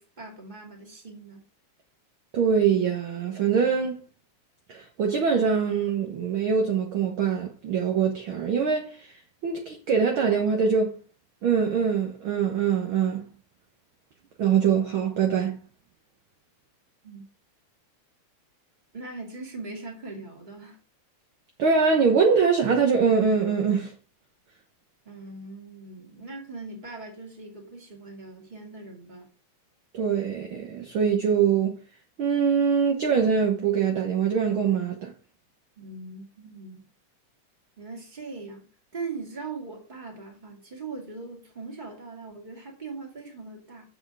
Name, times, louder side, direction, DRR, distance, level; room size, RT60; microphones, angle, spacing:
voice 1, 0.0-1.4 17.0-17.3 18.9-20.8 25.0-29.3 35.8-36.9 37.8-38.7 38.9-43.9, right 3 dB, 15° right, 2.1 m, -40 dB
voice 2, 2.3-4.1 4.7-10.9 11.4-13.3 14.4-15.6 21.6-23.9 29.9-31.8 32.2-35.1, right 6 dB, 60° right, 1.4 m, -23 dB
7.8 x 6.3 x 4.8 m
omnidirectional pair, 3.6 m